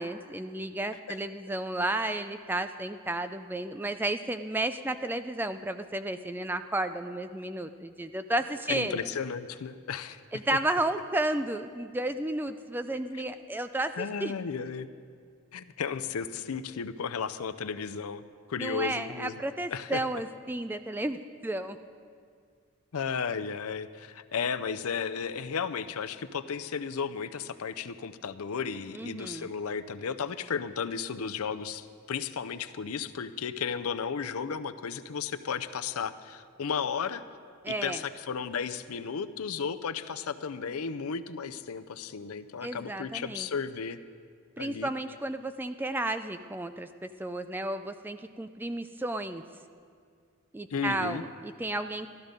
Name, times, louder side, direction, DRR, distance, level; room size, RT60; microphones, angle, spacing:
voice 1, 0.0-9.0 10.3-14.3 18.6-21.8 28.9-29.5 37.6-38.0 42.6-43.5 44.6-49.4 50.5-52.1, right 1 dB, 10° right, 9 dB, 0.3 m, -32 dB
voice 2, 8.7-10.2 14.0-14.9 15.5-18.2 18.5-19.3 19.7-20.0 22.9-37.2 37.7-44.0 44.6-44.9 50.7-51.2, left 6 dB, 85° left, 11 dB, 0.5 m, -34 dB
14.0 x 12.5 x 5.2 m, 2.2 s
head